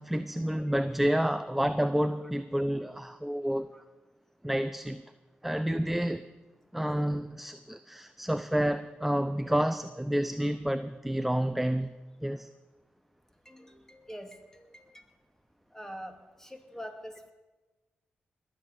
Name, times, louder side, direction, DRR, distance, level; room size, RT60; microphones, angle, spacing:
voice 1, 0.0-3.7 4.4-5.0 5.4-6.3 6.7-12.0 12.2-12.5, equal, 5° right, 12 dB, 0.6 m, -29 dB
voice 2, 13.5-15.0 15.7-17.3, equal, 10° left, 5 dB, 2.4 m, -45 dB
20.5 x 7.7 x 6.8 m, 1.2 s
supercardioid pair, 45°, 4 cm